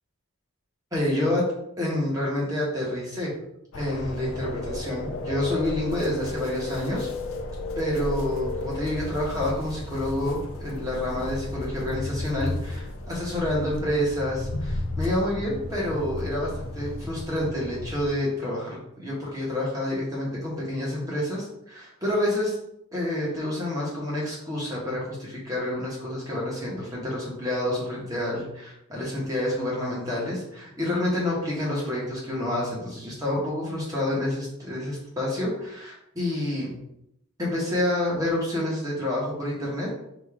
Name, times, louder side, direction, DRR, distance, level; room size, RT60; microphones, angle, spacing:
voice 1, 0.9-3.3 3.7-7.1 7.8-22.6 22.9-36.7 37.4-39.9, left 1 dB, 15° right, -5 dB, 1.3 m, -28 dB
sound 1, 3.7-18.1, left 2 dB, 65° left, 0.6 m, -34 dB
5.1 x 2.7 x 3.6 m, 0.81 s
head